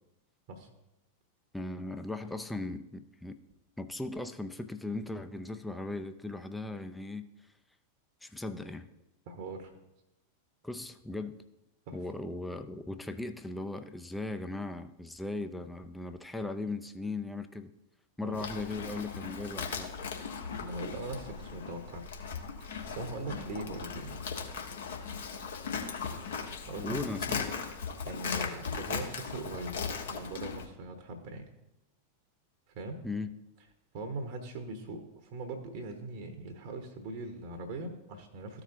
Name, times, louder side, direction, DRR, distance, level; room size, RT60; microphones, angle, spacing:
voice 1, 1.5-3.4 3.8-7.3 8.2-8.9 10.6-11.4 11.9-17.7 18.2-19.9 26.8-27.6 33.0-33.4, left 2 dB, 5° left, 8 dB, 0.5 m, -38 dB
voice 2, 9.3-9.7 11.9-12.0 18.2-18.5 20.6-22.1 22.6-24.2 26.6-27.0 28.0-29.7 30.1-31.4 32.7-33.0 33.9-38.6, right 2 dB, 50° right, 5 dB, 1.0 m, -40 dB
Livestock farm animals working animals, 18.3-30.6, left 6 dB, 60° left, 1.2 m, -38 dB
14.0 x 4.9 x 2.7 m, 0.93 s
figure-of-eight pair, 90°, 0 cm